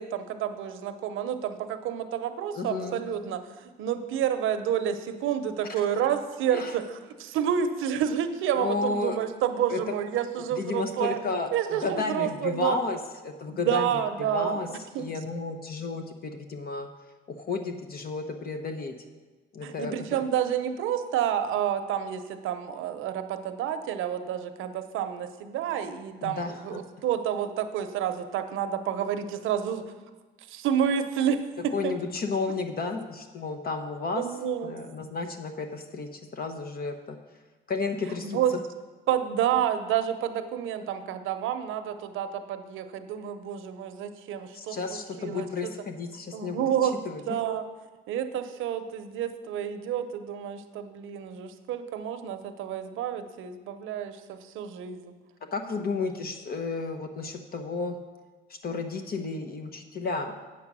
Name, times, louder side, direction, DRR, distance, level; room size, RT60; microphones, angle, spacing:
voice 1, 0.0-3.4 3.8-6.8 7.2-11.2 11.5-12.8 13.5-14.6 14.9-15.1 19.6-29.8 30.5-31.9 32.5-32.6 34.2-34.7 38.2-38.5 39.1-45.7 46.3-47.0 47.3-47.6 48.1-55.1, right 9 dB, 90° right, 9 dB, 0.7 m, -29 dB
voice 2, 2.5-3.0 6.5-6.8 8.6-9.2 9.7-9.9 10.5-14.0 14.3-14.7 15.0-16.9 17.3-18.9 19.5-19.9 26.2-26.8 31.7-34.3 34.6-37.2 37.7-38.4 44.5-47.4 55.5-58.0 58.5-60.4, left 4 dB, 50° left, 6 dB, 0.9 m, -32 dB
8.4 x 6.8 x 6.1 m, 1.3 s
cardioid pair, 90°, 20 cm